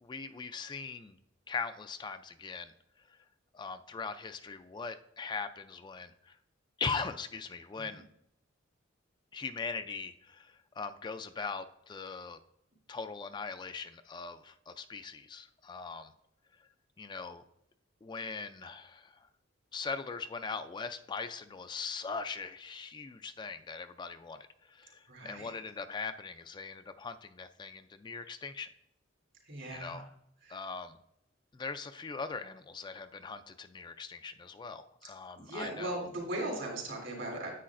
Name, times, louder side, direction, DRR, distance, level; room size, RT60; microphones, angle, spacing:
voice 1, 0.0-1.2 1.5-2.7 3.5-6.4 6.8-8.0 9.3-12.4 12.9-16.1 17.0-17.4 18.0-19.3 19.7-28.7 29.7-30.1 30.5-31.0 31.5-36.1, left 4 dB, 25° left, 10 dB, 0.3 m, -40 dB
voice 2, 25.1-25.5 29.4-30.0 30.4-30.6 35.4-37.5, right 1 dB, 75° right, -2 dB, 3.3 m, -38 dB
9.9 x 8.2 x 2.5 m, 0.79 s
head